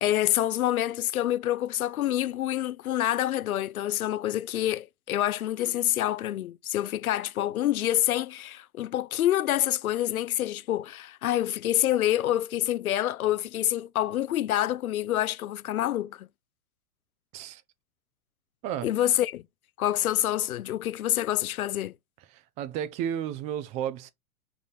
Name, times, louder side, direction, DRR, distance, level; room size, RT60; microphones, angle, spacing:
voice 1, 0.0-16.3 18.8-19.4 19.8-21.9, left 13 dB, 85° left, 0.5 m, -27 dB
voice 2, 22.3-24.1, right 10 dB, 20° right, 0.3 m, -33 dB
5.6 x 4.0 x 5.1 m
hypercardioid pair, 105°, 42 cm